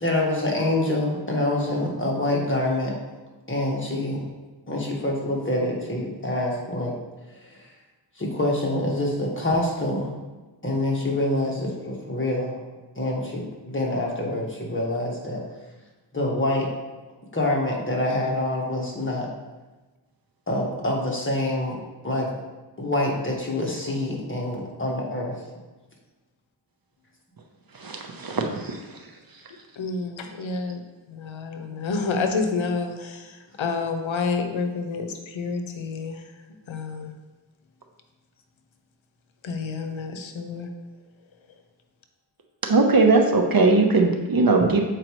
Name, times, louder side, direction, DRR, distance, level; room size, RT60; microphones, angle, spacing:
voice 1, 0.0-2.9 3.5-4.2 4.7-6.9 7.5-7.7 8.2-10.1 10.6-12.6 12.9-15.4 16.1-16.7 17.3-19.3 20.5-22.3 22.8-25.4, left 1 dB, 25° left, -2 dB, 1.6 m, -26 dB
voice 2, 27.7-28.8 42.7-44.8, right 3 dB, 50° right, 2 dB, 0.9 m, -19 dB
voice 3, 29.8-30.8 31.1-36.2 36.7-37.1 39.4-40.7, left 4 dB, 90° left, 6 dB, 0.7 m, -29 dB
7.7 x 4.7 x 3.1 m, 1.2 s
wide cardioid pair, 65°, 46 cm